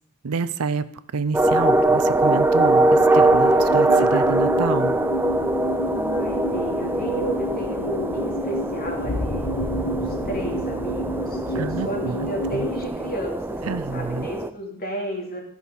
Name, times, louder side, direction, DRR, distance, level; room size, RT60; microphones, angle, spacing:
voice 1, 0.2-0.8 1.1-5.0 11.6-12.7 13.6-14.3, right 4 dB, 75° right, 14 dB, 0.6 m, -28 dB
sound 1, 1.3-14.5, right 2 dB, 10° right, 0.4 m, -22 dB
sound 2, 2.2-12.9, equal, 60° left, 1.1 m, -31 dB
voice 2, 5.9-9.4 9.8-15.4, equal, 40° left, 1 dB, 2.6 m, -32 dB
14.0 x 6.2 x 5.4 m, 0.67 s
head